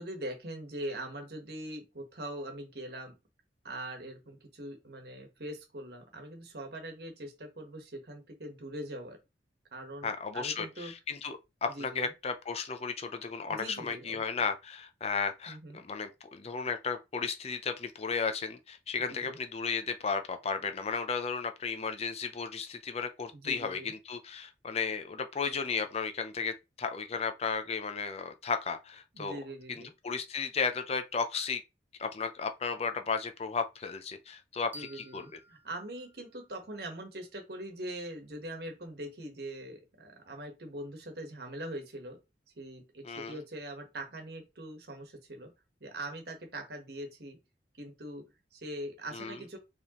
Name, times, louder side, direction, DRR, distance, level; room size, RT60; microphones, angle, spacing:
voice 1, 0.0-3.2 3.6-9.2 9.7-10.9 11.7-12.1 13.5-14.2 15.5-15.8 19.1-19.4 23.3-23.9 29.1-29.9 34.7-42.2 42.6-45.5 45.8-47.4 47.8-49.6, right 1 dB, 60° right, 1.3 m, -42 dB
voice 2, 10.0-29.4 29.7-31.6 32.0-35.2 43.0-43.4 49.1-49.4, left 5 dB, 35° left, 0.5 m, -34 dB
sound 1, 34.7-37.5, left 1 dB, 10° right, 0.5 m, -54 dB
4.7 x 3.4 x 3.0 m
head